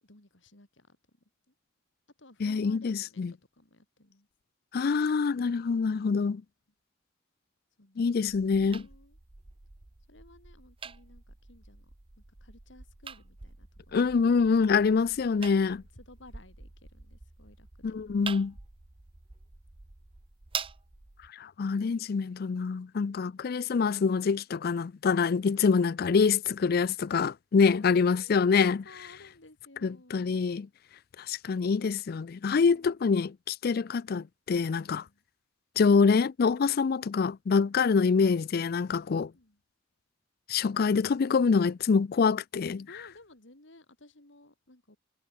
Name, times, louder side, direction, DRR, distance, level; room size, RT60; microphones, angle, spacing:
voice 1, 0.0-1.0 2.2-4.3 7.8-9.2 10.1-14.1 15.5-17.9 27.6-30.4 32.7-33.0 34.8-35.2 39.2-39.6 42.9-45.0, left 2 dB, 65° left, 3.4 m, -56 dB
voice 2, 2.4-3.3 4.7-6.4 8.0-8.9 13.9-15.8 17.8-18.5 21.4-28.8 29.8-30.7 31.3-35.0 35.8-39.3 40.5-42.9, left 5 dB, 50° left, 0.4 m, -25 dB
sound 1, 8.3-21.3, right 6 dB, 30° right, 0.7 m, -45 dB
head